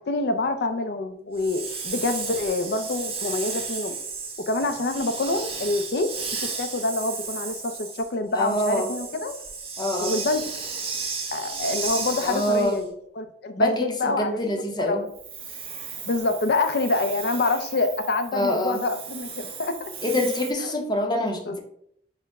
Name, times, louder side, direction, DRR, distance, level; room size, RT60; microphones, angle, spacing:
voice 1, 0.0-4.0 4.5-6.1 6.4-9.3 10.0-10.4 11.3-14.4 14.8-15.1 16.1-19.7 21.5-21.6, left 2 dB, 65° left, 8 dB, 0.5 m, -26 dB
Hiss, 1.3-12.8 15.1-20.5, right 5 dB, 35° right, 0.8 m, -34 dB
voice 2, 8.3-8.9 9.8-10.1 12.2-12.8 13.6-15.0 18.3-18.8 20.0-21.6, left 1 dB, 25° left, 3 dB, 0.7 m, -25 dB
4.3 x 2.1 x 4.6 m, 0.70 s
head